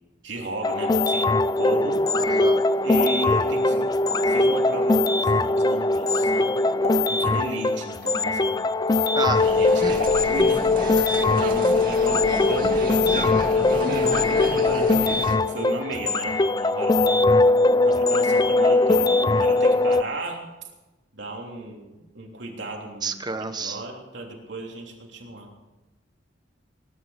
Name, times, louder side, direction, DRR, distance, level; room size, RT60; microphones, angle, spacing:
voice 1, 0.2-1.3 1.5-2.3 2.8-3.9 4.2-6.6 7.1-9.1 9.4-10.7 11.4-17.3 17.8-20.4 21.1-25.5, right 2 dB, 70° right, 0 dB, 3.3 m, -35 dB
sound 1, 0.6-20.0, left 3 dB, 20° left, 0.4 m, -21 dB
voice 2, 2.2-2.6 9.1-9.5 9.8-10.0 11.0-11.2 23.0-23.8, right 3 dB, 25° right, 9 dB, 1.0 m, -30 dB
Explosion, 2.7-13.0, left 2 dB, 60° left, 2.6 m, -39 dB
sound 2, 9.3-15.4, right 2 dB, 50° right, 2.0 m, -32 dB
19.0 x 11.5 x 5.8 m, 1.1 s
head